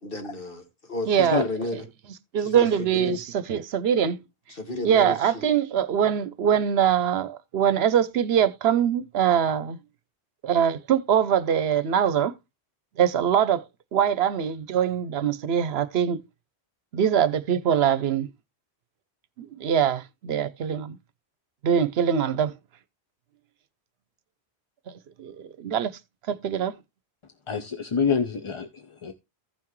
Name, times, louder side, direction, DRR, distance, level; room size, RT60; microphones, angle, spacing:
voice 1, 0.0-1.8 2.4-3.2 4.5-5.5, left 2 dB, 55° left, 2.0 m, -33 dB
voice 2, 1.1-1.4 2.3-4.2 4.8-9.8 10.4-12.3 13.0-13.6 13.9-16.2 16.9-18.3 19.4-21.0 21.6-22.5 24.9-25.9 26.3-26.8, right 8 dB, 70° right, 0.9 m, -23 dB
voice 3, 27.5-29.1, left 5 dB, 35° left, 0.6 m, -26 dB
15.0 x 5.8 x 3.1 m
omnidirectional pair, 1.1 m